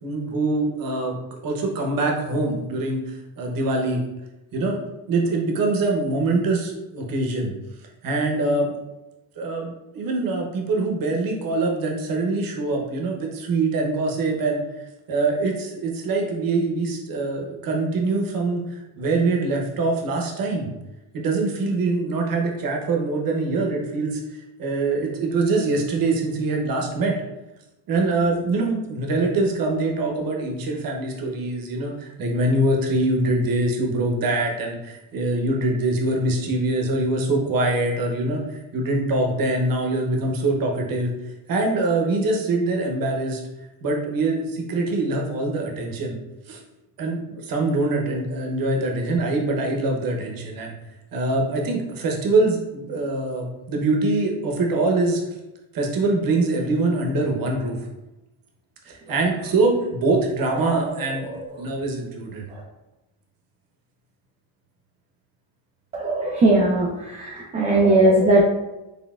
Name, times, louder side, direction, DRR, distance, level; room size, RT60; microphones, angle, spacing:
voice 1, 0.0-4.0 4.5-4.8 5.1-7.5 8.0-8.7 9.4-14.6 15.1-20.7 21.1-24.2 24.6-27.1 27.9-41.1 41.5-43.4 43.8-46.2 46.5-46.6 47.0-50.7 51.1-55.2 55.7-57.8 58.8-61.2 61.6-62.4, right 2 dB, 50° right, 1 dB, 1.0 m, -24 dB
voice 2, 65.9-68.4, right 2 dB, 15° right, -3 dB, 0.5 m, -19 dB
4.1 x 3.4 x 2.4 m, 0.99 s
cardioid pair, 110°, 45 cm